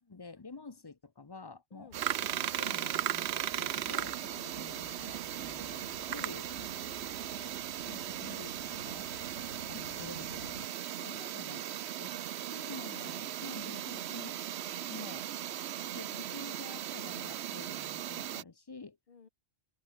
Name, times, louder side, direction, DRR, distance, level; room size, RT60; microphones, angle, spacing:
voice 1, 0.0-1.9 2.2-2.3 2.6-6.5 7.3-7.5 7.9-9.1 9.7-10.5 11.0-11.6 12.0-14.4 14.9-15.3 15.9-19.0, left 4 dB, 25° left, 0.7 m, -49 dB
voice 2, 1.7-2.0 6.6-7.6 9.8-10.0 10.9-11.8 19.1-19.3, left 5 dB, 50° left, 1.3 m, -57 dB
sound 1, 1.9-10.7, left 5 dB, 80° left, 2.0 m, -54 dB
sound 2, 1.9-18.4, right 11 dB, 70° right, 0.9 m, -37 dB
open air
omnidirectional pair, 1.2 m